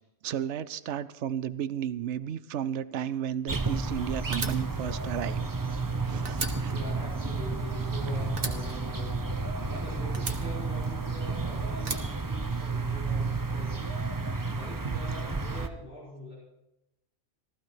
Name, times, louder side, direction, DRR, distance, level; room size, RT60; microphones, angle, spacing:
voice 1, 0.2-5.4 5.7-6.8 14.8-14.9, right 9 dB, 75° right, 15 dB, 0.9 m, -33 dB
sound 1, 3.5-15.7, right 3 dB, 20° right, 0.7 m, -31 dB
Fire, 4.3-5.9 6.2-8.0 8.4-9.7 10.1-11.3 11.8-13.0, right 3 dB, 50° right, 1.6 m, -38 dB
voice 2, 6.5-16.3, left 1 dB, 50° left, -8 dB, 4.9 m, -43 dB
16.0 x 14.0 x 4.5 m, 0.88 s
omnidirectional pair, 1.2 m